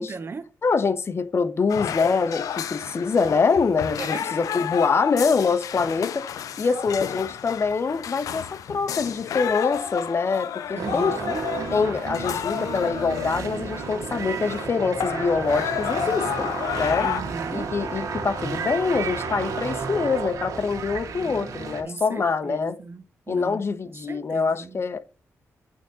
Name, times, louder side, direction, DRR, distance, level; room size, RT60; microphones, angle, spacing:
voice 1, 0.0-0.4 4.0-4.3 10.7-11.4 17.0-17.7 21.8-23.6 24.1-24.8, right 4 dB, 45° right, 1.0 m, -36 dB
voice 2, 0.6-6.3 6.6-11.4 11.7-17.1 17.5-22.8 23.3-25.0, left 4 dB, 50° left, 1.2 m, -25 dB
sound 1, 1.7-14.7 15.0-17.2, left 9 dB, 85° left, 0.6 m, -31 dB
sound 2, 10.8-21.8, right 5 dB, 90° right, 2.1 m, -32 dB
8.6 x 3.8 x 6.8 m
cardioid pair, 70°, 6 cm